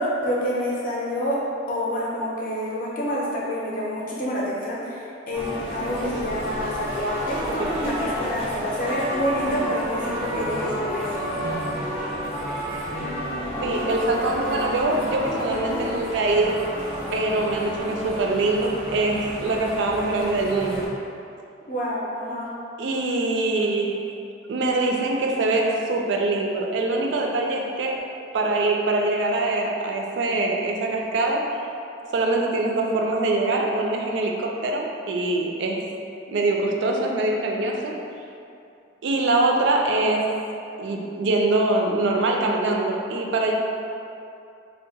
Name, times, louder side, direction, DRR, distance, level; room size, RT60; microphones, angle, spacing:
voice 1, 0.0-1.4 1.7-11.2 21.7-22.5, equal, 45° left, -6 dB, 0.6 m, -27 dB
sound 1, 5.3-20.9, equal, 10° right, 0.5 m, -30 dB
voice 2, 13.6-16.6 17.1-20.8 22.8-24.1 24.5-28.0 28.3-31.4 32.1-35.9 36.3-37.9 39.0-40.3 40.8-43.5, right 2 dB, 65° right, 1 dB, 0.3 m, -23 dB
2.7 x 2.0 x 3.8 m, 2.6 s
head